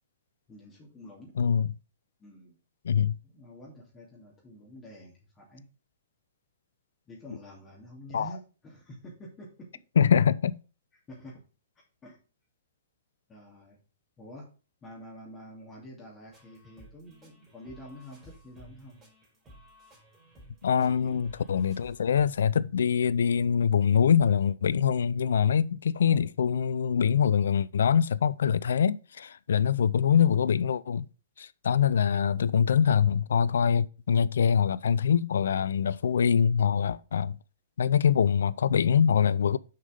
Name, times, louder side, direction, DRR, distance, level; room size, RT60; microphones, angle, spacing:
voice 1, 0.5-1.3 2.2-2.6 3.2-5.6 7.1-9.7 11.1-11.4 12.0-12.2 13.3-13.8 14.2-14.5 14.8-19.0 20.7-21.2, equal, 20° left, 2.8 m, -47 dB
voice 2, 1.4-1.7 2.8-3.2 8.1-8.3 10.0-10.6 20.6-31.1 31.4-37.4 37.8-39.6, left 7 dB, 65° left, 0.4 m, -24 dB
sound 1, 16.3-22.4, right 1 dB, 20° right, 3.9 m, -55 dB
6.5 x 5.4 x 5.2 m
figure-of-eight pair, 110°, 0 cm